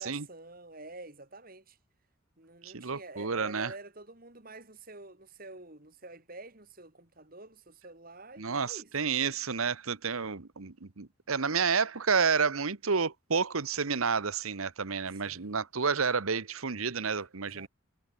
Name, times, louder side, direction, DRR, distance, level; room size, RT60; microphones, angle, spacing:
voice 1, 0.0-1.8 2.4-8.9 15.1-15.5 17.4-17.7, right 2 dB, 45° right, 3.7 m, -48 dB
voice 2, 2.6-3.7 8.4-17.7, right 5 dB, 90° right, 1.2 m, -30 dB
head